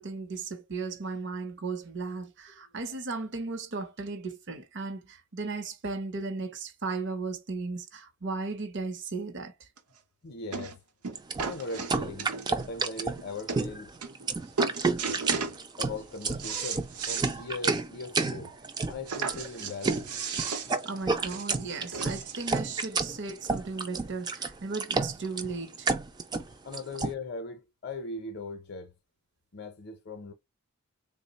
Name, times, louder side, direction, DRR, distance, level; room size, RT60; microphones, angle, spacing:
voice 1, 0.0-9.7 20.8-25.9, right 3 dB, 55° right, 0.7 m, -36 dB
sound 1, 9.8-9.9 10.5-10.8 11.0-12.6 13.2-13.3 13.5-13.6 14.0-14.3 14.6-15.6 16.0-17.3 17.7-17.8 18.1-18.2 19.1-22.5 23.3-23.4, right 5 dB, 90° right, 0.7 m, -35 dB
voice 2, 10.2-10.8 11.4-13.9 15.8-18.5 18.9-20.1 26.6-28.9 29.5-30.3, left 3 dB, 45° left, 0.6 m, -39 dB
sound 2, 11.2-27.1, right 4 dB, 20° right, 0.3 m, -30 dB
3.6 x 2.1 x 3.9 m
head